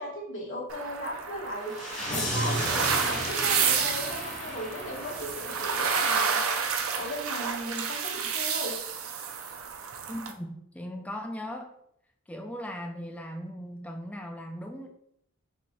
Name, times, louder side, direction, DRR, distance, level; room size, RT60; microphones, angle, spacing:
voice 1, 0.0-1.7 2.1-6.4 6.9-8.7, equal, 60° left, -5 dB, 1.3 m, -36 dB
sound 1, 0.7-10.3, right 6 dB, 70° right, 0.5 m, -30 dB
sound 2, 1.7-6.7, left 1 dB, 35° left, 1.3 m, -35 dB
voice 2, 10.1-11.7 12.3-14.9, equal, 5° left, 3 dB, 0.4 m, -38 dB
4.2 x 3.2 x 3.1 m, 0.76 s
head